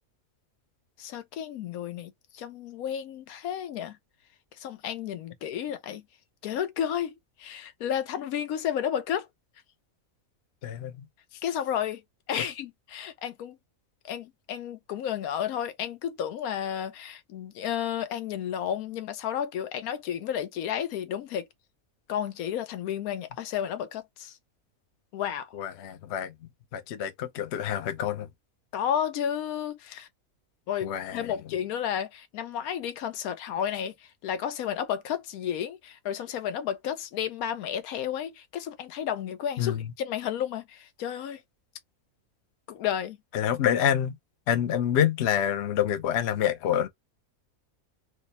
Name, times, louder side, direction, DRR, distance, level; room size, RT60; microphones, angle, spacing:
voice 1, 1.0-4.0 4.6-6.0 6.4-9.3 11.4-12.0 12.3-13.6 14.0-21.5 22.1-24.4 25.1-25.5 28.7-30.1 30.7-41.4 42.7-43.2, left 9 dB, 85° left, 1.1 m, -32 dB
voice 2, 10.6-11.0 25.5-26.3 26.7-28.3 30.8-31.2 39.6-39.9 43.3-44.1 44.5-46.9, left 10 dB, 60° left, 0.8 m, -27 dB
3.1 x 2.1 x 3.8 m
omnidirectional pair, 1.5 m